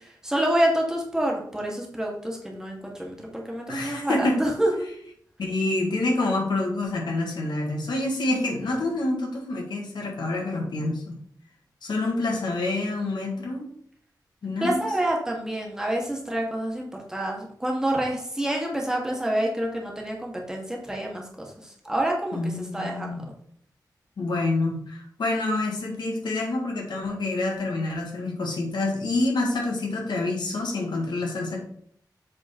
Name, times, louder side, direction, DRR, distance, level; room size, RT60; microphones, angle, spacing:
voice 1, 0.2-4.7 14.6-21.5 21.8-22.4 22.7-23.1, right 1 dB, 10° right, -1 dB, 1.4 m, -27 dB
voice 2, 3.7-4.4 5.4-11.1 11.8-13.6 14.4-14.8 22.3-23.2 24.2-31.6, left 2 dB, 90° left, 0 dB, 1.7 m, -27 dB
7.6 x 3.9 x 4.3 m, 0.65 s
wide cardioid pair, 160°, 7 cm